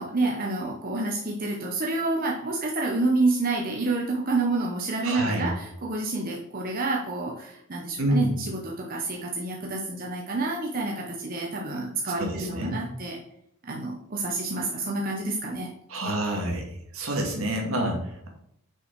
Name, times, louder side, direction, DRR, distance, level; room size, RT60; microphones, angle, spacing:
voice 1, 0.0-13.2 13.6-15.7 16.0-16.1, right 2 dB, 40° right, -1 dB, 0.9 m, -28 dB
voice 2, 5.0-5.5 8.0-8.3 12.0-12.8 15.9-16.6 16.9-18.3, right 1 dB, 70° right, 1 dB, 1.9 m, -28 dB
6.2 x 5.4 x 4.5 m, 0.75 s
head